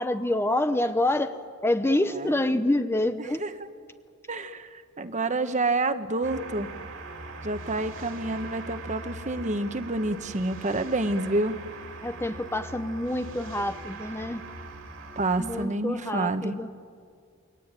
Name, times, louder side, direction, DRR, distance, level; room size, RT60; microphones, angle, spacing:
voice 1, 0.0-1.3 1.6-3.4 12.0-14.4 15.4-16.7, left 1 dB, 10° left, 9 dB, 0.7 m, -27 dB
voice 2, 4.3-6.7 7.4-11.6 15.2-16.6, right 2 dB, 35° right, 10 dB, 1.2 m, -28 dB
sound 1, 6.2-15.7, right 2 dB, 65° right, 2.9 m, -41 dB
28.5 x 23.0 x 9.0 m, 2.2 s
head